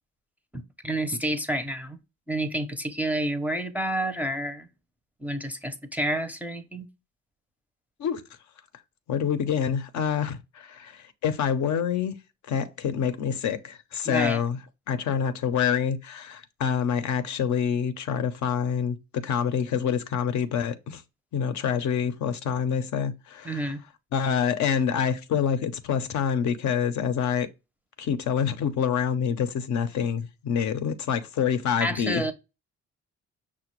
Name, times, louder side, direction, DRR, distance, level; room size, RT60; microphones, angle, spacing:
voice 1, 0.5-2.0 2.3-4.7 5.2-6.9 14.1-14.4 23.4-23.8 31.8-32.3, right 1 dB, 5° right, 0.5 m, -29 dB
voice 2, 9.1-12.1 12.5-14.6 14.9-21.0 21.3-23.7 24.1-27.5 28.0-32.2, left 7 dB, 70° left, 0.6 m, -26 dB
5.8 x 2.1 x 3.0 m
cardioid pair, 90°, 30 cm